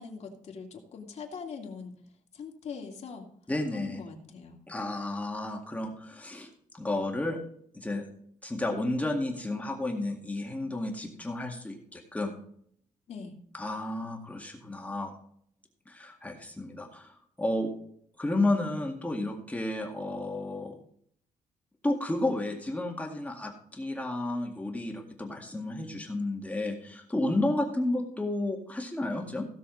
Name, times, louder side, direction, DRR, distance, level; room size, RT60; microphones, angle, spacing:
voice 1, 0.0-2.0 2.3-3.3 3.7-4.6 13.1-13.3, left 5 dB, 55° left, 1 dB, 2.5 m, -42 dB
voice 2, 3.5-4.0 4.7-7.4 7.7-8.0 8.4-12.3 13.5-15.1 15.9-17.7 18.2-20.7 21.8-29.5, left 2 dB, 10° left, 1 dB, 1.9 m, -32 dB
16.5 x 6.8 x 3.9 m, 0.64 s
cardioid pair, 125°, 13 cm